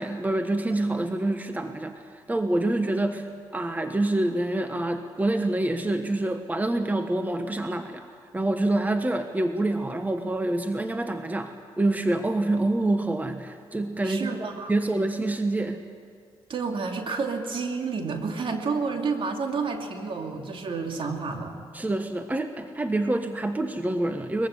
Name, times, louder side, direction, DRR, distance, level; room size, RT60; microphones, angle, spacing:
voice 1, 0.0-1.9 2.3-3.2 3.5-8.0 8.3-15.8 21.7-24.5, right 2 dB, 15° right, 7 dB, 1.3 m, -26 dB
voice 2, 14.0-14.7 16.5-21.6, right 4 dB, 60° right, 3 dB, 2.8 m, -30 dB
22.5 x 15.0 x 9.8 m, 2.1 s
supercardioid pair, 65°, 10 cm